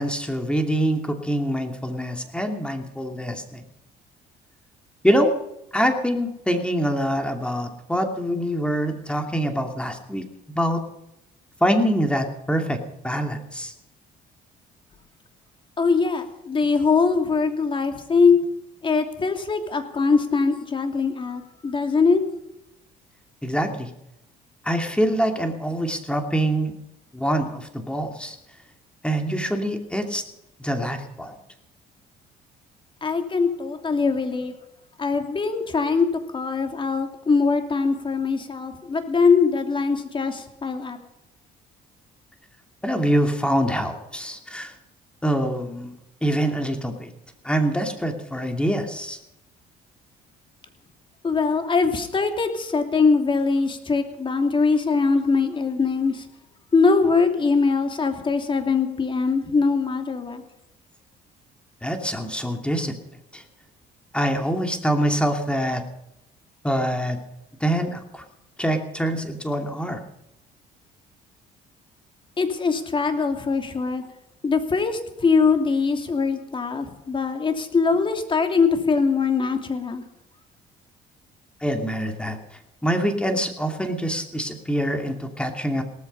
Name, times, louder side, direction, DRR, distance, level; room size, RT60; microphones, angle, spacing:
voice 1, 0.0-3.6 5.0-5.3 5.7-10.8 11.6-12.8 13.0-13.7 23.4-23.9 24.6-26.7 27.1-28.4 29.0-30.2 30.6-31.3 42.8-44.7 45.2-45.9 46.2-47.1 47.4-49.2 61.8-62.9 63.3-63.4 64.1-65.8 66.6-67.2 67.6-68.2 68.6-70.0 81.6-82.4 82.8-85.8, equal, 5° left, 5 dB, 2.6 m, -25 dB
voice 2, 15.8-18.5 18.8-22.2 33.0-34.5 35.0-36.1 36.3-41.0 51.2-56.2 56.7-60.4 72.4-74.0 74.4-80.0, left 4 dB, 30° left, 6 dB, 2.9 m, -22 dB
18.0 x 14.5 x 5.5 m, 0.84 s
cardioid pair, 110°, 17 cm